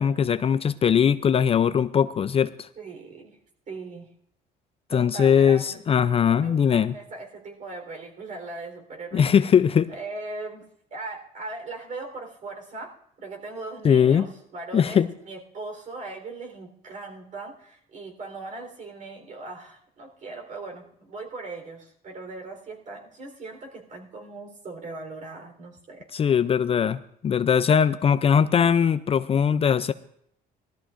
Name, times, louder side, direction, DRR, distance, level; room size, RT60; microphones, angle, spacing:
voice 1, 0.0-2.7 4.9-6.9 9.1-9.9 13.8-14.3 14.7-15.1 26.1-29.9, left 7 dB, 35° left, 13 dB, 0.4 m, -20 dB
voice 2, 2.8-3.4 3.7-4.1 4.9-9.3 9.9-26.1, right 3 dB, 50° right, 3 dB, 3.8 m, -39 dB
19.5 x 13.5 x 2.5 m, 0.69 s
cardioid pair, 110°, 17 cm